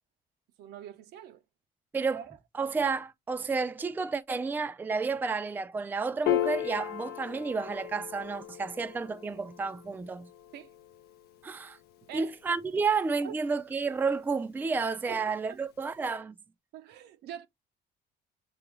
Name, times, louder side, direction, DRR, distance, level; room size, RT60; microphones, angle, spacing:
voice 1, 0.6-1.4 2.1-2.3 10.5-10.7 12.1-12.3 13.2-13.4 15.1-15.2 15.5-15.6 16.7-17.5, right 10 dB, 75° right, 0.6 m, -44 dB
voice 2, 2.5-10.3 11.4-11.8 12.1-16.4, right 4 dB, 10° right, 0.3 m, -31 dB
Piano, 6.3-12.9, left 13 dB, 70° left, 0.5 m, -36 dB
6.8 x 2.3 x 3.1 m
cardioid pair, 110°, 17 cm